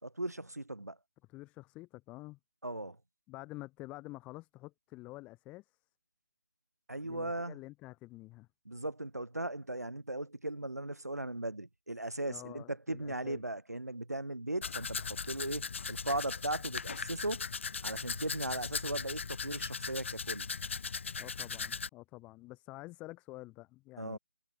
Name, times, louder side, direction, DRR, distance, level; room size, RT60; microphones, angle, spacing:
voice 1, 0.0-1.0 2.6-3.0 6.9-7.6 8.7-17.5 17.8-20.5 24.0-24.2, right 1 dB, 90° right, 6.0 m, -38 dB
voice 2, 1.3-2.4 3.3-5.6 7.0-8.5 12.2-13.4 21.2-24.2, left 20 dB, 15° left, 7.4 m, -48 dB
Domestic sounds home sounds, 14.6-21.9, left 5 dB, 50° left, 1.4 m, -39 dB
figure-of-eight pair, 150°, 8 cm